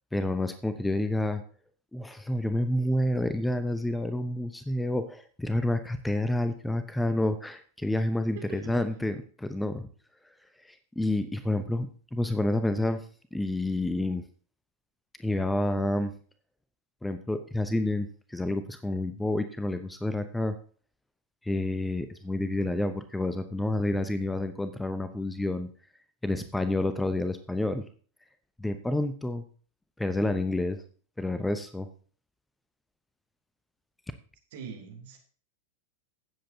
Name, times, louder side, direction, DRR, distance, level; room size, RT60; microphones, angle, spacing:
voice 1, 0.1-1.4 1.9-9.9 10.6-13.0 13.3-14.2 15.2-16.1 17.0-20.5 21.4-25.7 26.2-27.8 28.6-29.4 30.0-30.8 31.2-31.9, left 1 dB, 5° left, 10 dB, 0.7 m, -29 dB
voice 2, 8.3-8.7 34.5-35.2, right 6 dB, 55° right, 2 dB, 2.8 m, -42 dB
16.0 x 7.7 x 2.7 m, 0.42 s
figure-of-eight pair, 90°, 0 cm